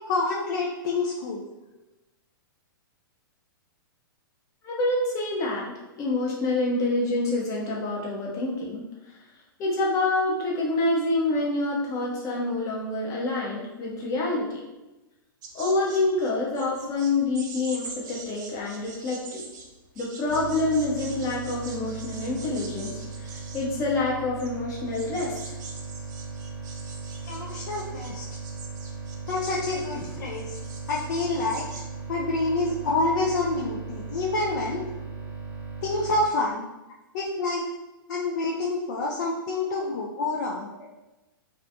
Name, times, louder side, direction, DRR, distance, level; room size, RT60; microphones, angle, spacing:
voice 1, 0.1-1.4 27.3-28.2 29.3-30.6 30.9-31.7 32.1-34.8 35.8-36.7 37.1-37.6 38.1-40.7, left 2 dB, 50° left, -2 dB, 0.4 m, -27 dB
voice 2, 4.6-8.8 9.6-14.6 15.5-19.4 20.0-25.4, left 2 dB, 25° left, -3 dB, 0.8 m, -27 dB
sound 1, 15.4-31.8, right 4 dB, 50° right, 0.5 m, -44 dB
sound 2, 20.3-36.3, right 4 dB, 80° left, 1.2 m, -38 dB
2.4 x 2.3 x 2.6 m, 1.0 s
figure-of-eight pair, 110°, 12 cm